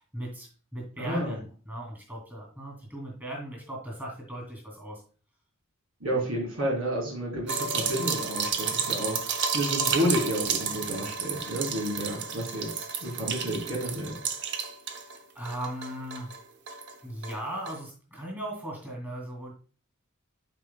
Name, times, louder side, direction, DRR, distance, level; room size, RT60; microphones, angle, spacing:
voice 1, 0.0-5.0 15.3-16.3 17.0-19.5, right 1 dB, 10° right, -2 dB, 2.7 m, -38 dB
voice 2, 1.0-1.4 6.0-14.2, equal, 75° right, -2 dB, 3.7 m, -31 dB
sound 1, 7.5-15.2 15.4-16.9 17.2-17.4 17.7-17.8, right 6 dB, 55° right, 0.8 m, -31 dB
12.0 x 4.8 x 2.3 m, 0.39 s
head